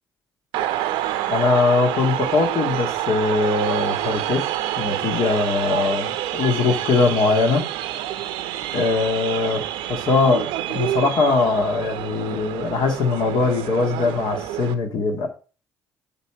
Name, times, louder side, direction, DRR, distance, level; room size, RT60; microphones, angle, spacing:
sound 1, 0.5-14.7, right 13 dB, 70° right, 0.7 m, -27 dB
voice 1, 1.3-4.5 4.8-7.7 8.7-9.6 9.9-15.3, left 3 dB, 55° left, 2.1 m, -21 dB
8.1 x 5.5 x 4.5 m
figure-of-eight pair, 45°, 9 cm